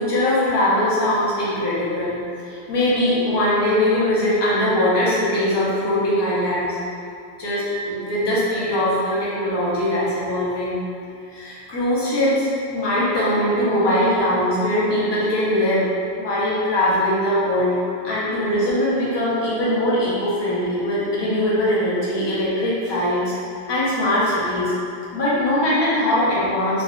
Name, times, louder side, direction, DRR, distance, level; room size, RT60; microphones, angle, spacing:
voice 1, 0.0-6.8 7.4-10.8 11.3-15.9 16.2-17.8 18.0-23.3 23.7-24.7 25.1-26.8, left 1 dB, 30° left, -9 dB, 0.6 m, -21 dB
3.5 x 2.3 x 2.3 m, 2.5 s
omnidirectional pair, 1.1 m